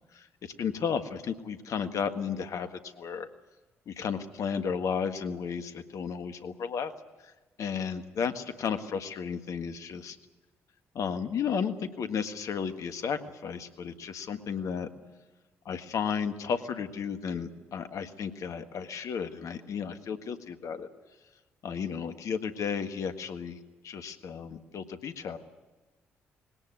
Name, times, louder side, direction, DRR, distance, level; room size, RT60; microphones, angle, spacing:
voice 1, 0.6-3.3 3.9-6.9 7.2-7.3 7.6-10.2 10.9-14.9 15.6-20.9 21.6-23.6 23.8-25.4, left 6 dB, 60° left, 8 dB, 1.6 m, -33 dB
20.5 x 18.0 x 9.6 m, 1.2 s
hypercardioid pair, 40°, 6 cm